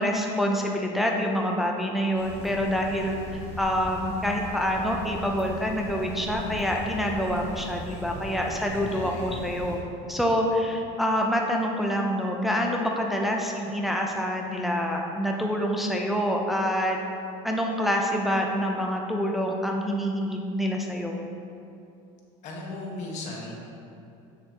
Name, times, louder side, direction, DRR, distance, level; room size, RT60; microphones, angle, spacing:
voice 1, 0.0-9.8 10.1-17.0 17.4-21.2, equal, ahead, 0 dB, 0.5 m, -26 dB
sound 1, 2.2-9.8, left 1 dB, 20° left, 1.5 m, -39 dB
voice 2, 8.7-9.3 22.4-23.5, left 2 dB, 50° left, -3 dB, 1.5 m, -37 dB
6.9 x 6.5 x 2.9 m, 2.6 s
supercardioid pair, 130°, 15 cm